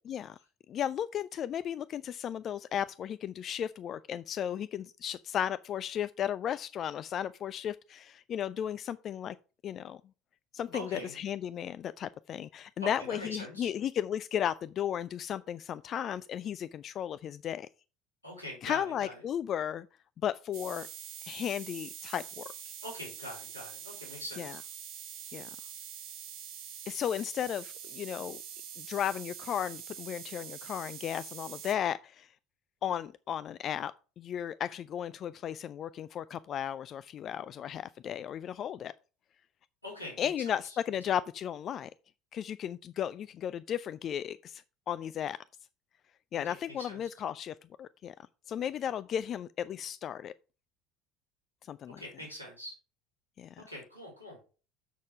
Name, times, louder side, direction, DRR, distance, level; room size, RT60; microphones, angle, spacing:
voice 1, 0.7-9.4 9.6-10.0 10.5-17.7 18.6-19.9 20.2-20.9 21.2-22.4 24.4-24.5 25.3-25.5 26.9-28.4 28.8-32.3 32.8-33.9 34.2-38.9 40.2-41.9 42.3-45.4 46.3-48.1 48.5-50.3 51.7-52.0 53.4-53.5, left 9 dB, 40° left, 0.3 m, -35 dB
voice 2, 10.7-11.2 12.8-13.7 18.2-19.2 22.8-24.6 39.8-40.8 46.3-47.1 51.9-52.8 53.6-54.4, left 1 dB, 85° left, 3.5 m, -43 dB
sound 1, 20.5-31.7, right 9 dB, 55° right, 1.5 m, -45 dB
7.3 x 6.4 x 4.9 m
figure-of-eight pair, 65°, 0 cm